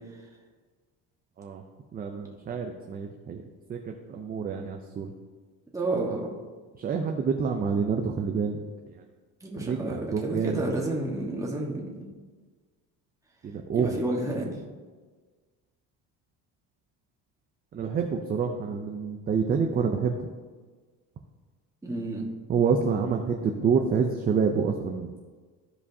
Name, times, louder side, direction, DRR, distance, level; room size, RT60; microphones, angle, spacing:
voice 1, 1.9-3.4 3.7-5.1 6.8-8.6 8.9-9.0 9.6-10.8 13.4-13.9 17.7-20.3 22.5-25.2, right 6 dB, 25° right, 3 dB, 0.5 m, -27 dB
voice 2, 5.7-6.3 9.4-12.0 13.7-14.6 21.8-22.3, right 2 dB, 10° right, -3 dB, 1.4 m, -30 dB
14.0 x 5.0 x 2.7 m, 1.4 s
cardioid pair, 145°, 36 cm